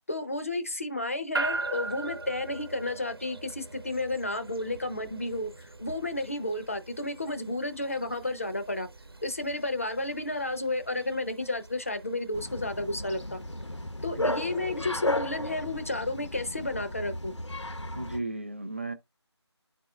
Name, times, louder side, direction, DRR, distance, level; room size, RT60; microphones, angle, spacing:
voice 1, 0.1-8.9 9.2-13.4 14.0-17.3, left 2 dB, 30° left, 0.7 m, -32 dB
sound 1, 1.3-15.6, right 3 dB, 55° right, 1.1 m, -41 dB
Bark, 12.3-18.2, left 1 dB, 85° left, 0.9 m, -34 dB
voice 2, 17.9-18.9, right 2 dB, 25° right, 0.6 m, -35 dB
11.0 x 4.5 x 2.2 m
figure-of-eight pair, 170°, 15 cm